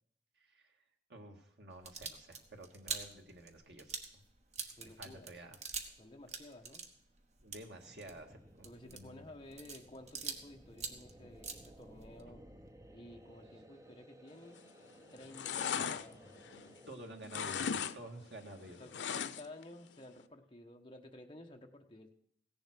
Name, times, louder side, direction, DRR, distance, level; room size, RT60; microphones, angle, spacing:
voice 1, 0.4-0.7 1.1-4.2 4.8-5.6 7.4-9.2 16.9-18.9, right 1 dB, 70° right, 3 dB, 1.8 m, -51 dB
sound 1, 1.7-6.0 6.3-10.5 10.7-12.2, right 5 dB, 40° right, 1.1 m, -45 dB
voice 2, 4.8-5.3 6.0-6.8 8.6-12.4 12.9-14.6 15.1-16.4 18.5-22.1, left 1 dB, 25° left, 3 dB, 1.2 m, -53 dB
sound 2, 7.6-16.9, right 1 dB, 20° right, 0.7 m, -58 dB
sound 3, 14.5-14.9 15.2-16.9 17.2-18.0 18.2-19.6 20.0-20.1, left 7 dB, 85° left, 0.5 m, -38 dB
16.5 x 7.1 x 6.0 m, 0.69 s
head